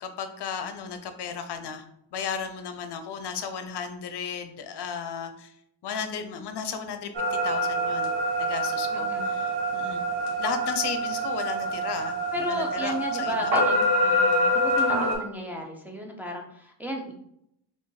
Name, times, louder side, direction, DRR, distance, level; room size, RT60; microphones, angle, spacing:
voice 1, 0.0-1.8 2.1-5.5 5.8-7.1 7.4-8.1 8.4-10.0 10.3-13.5, left 6 dB, 70° left, 8 dB, 0.6 m, -34 dB
sound 1, 7.1-15.1, equal, 85° right, 1.2 m, -26 dB
voice 2, 8.9-9.3 12.3-17.1, left 1 dB, 5° right, -1 dB, 0.6 m, -34 dB
3.7 x 2.5 x 3.8 m, 0.74 s
cardioid pair, 115°, 42 cm